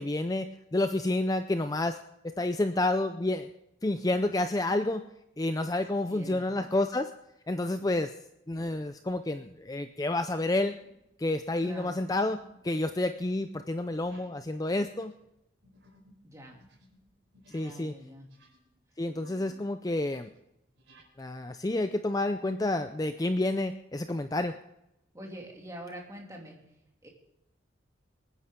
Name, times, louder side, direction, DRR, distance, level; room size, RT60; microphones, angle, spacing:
voice 1, 0.0-2.0 2.2-3.5 3.8-5.0 5.4-7.1 7.5-8.2 8.5-10.8 11.2-15.1 17.5-17.9 19.0-20.3 21.2-24.6, left 2 dB, 20° left, 8 dB, 0.4 m, -29 dB
voice 2, 6.1-6.5 11.6-12.0 16.2-16.6 17.5-18.3 25.1-26.6 27.0-27.1, equal, 15° right, 0 dB, 2.6 m, -44 dB
sound 1, 9.0-9.2 9.7-10.0 10.6-11.1 11.3-17.9 18.2-19.6 19.9-21.1, equal, 70° right, 4.5 m, -61 dB
26.5 x 9.7 x 3.7 m, 0.85 s
head